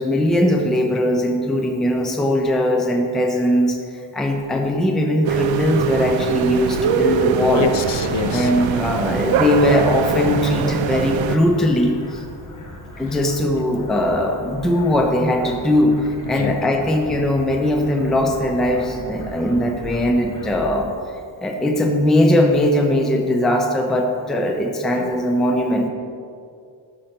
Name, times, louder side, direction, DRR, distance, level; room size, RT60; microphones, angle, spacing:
voice 1, 0.0-7.7 8.3-12.2 13.0-20.9 21.4-25.9, left 1 dB, ahead, 3 dB, 0.4 m, -20 dB
sound 1, 5.2-11.4, right 7 dB, 80° right, 0.5 m, -22 dB
sound 2, 6.4-20.8, equal, 40° left, 1.1 m, -38 dB
voice 2, 7.6-8.5 13.1-13.2 16.4-16.6 25.0-25.1, left 7 dB, 65° left, 9 dB, 0.6 m, -26 dB
6.6 x 5.2 x 5.8 m, 2.3 s
wide cardioid pair, 175°, 46 cm